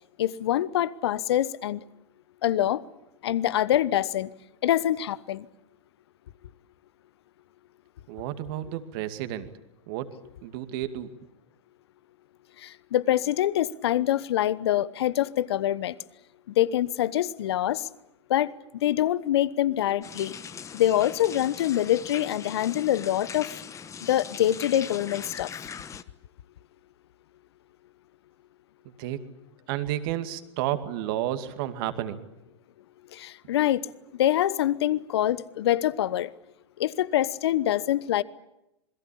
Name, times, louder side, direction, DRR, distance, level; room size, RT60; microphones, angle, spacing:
voice 1, 0.2-1.8 2.4-2.8 3.2-4.3 4.6-5.4 12.6-15.9 16.6-17.8 18.3-18.5 18.8-20.3 20.7-23.6 24.1-25.5 33.1-33.8 34.2-36.3 36.8-38.2, left 12 dB, 65° left, 1.1 m, -25 dB
voice 2, 8.1-9.5 9.9-10.1 10.4-11.1 29.0-29.2 29.7-32.2, right 13 dB, 50° right, 2.4 m, -31 dB
sound 1, 20.0-26.0, left 7 dB, 20° left, 1.2 m, -41 dB
27.5 x 21.5 x 8.6 m
figure-of-eight pair, 95°, 15 cm